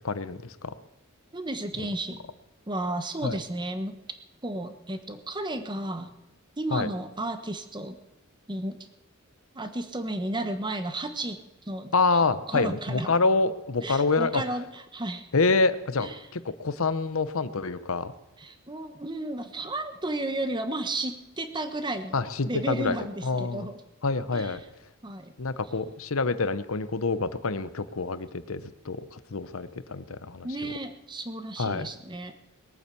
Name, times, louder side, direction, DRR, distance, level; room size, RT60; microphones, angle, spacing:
voice 1, 0.0-0.7 1.8-1.9 3.2-3.4 6.7-6.9 11.9-14.4 15.3-18.1 22.1-23.0 23.2-23.7 24.0-24.6 25.4-30.7 31.6-31.9, left 3 dB, 70° left, 13 dB, 0.9 m, -27 dB
voice 2, 1.3-2.2 2.7-4.0 4.4-6.1 6.6-7.9 8.5-8.8 9.5-11.4 11.7-11.9 12.5-13.1 13.8-15.3 16.0-16.1 18.4-23.8 24.3-24.6 25.0-25.3 30.4-32.3, right 1 dB, 20° right, 8 dB, 1.2 m, -33 dB
21.5 x 9.1 x 7.0 m, 0.95 s
head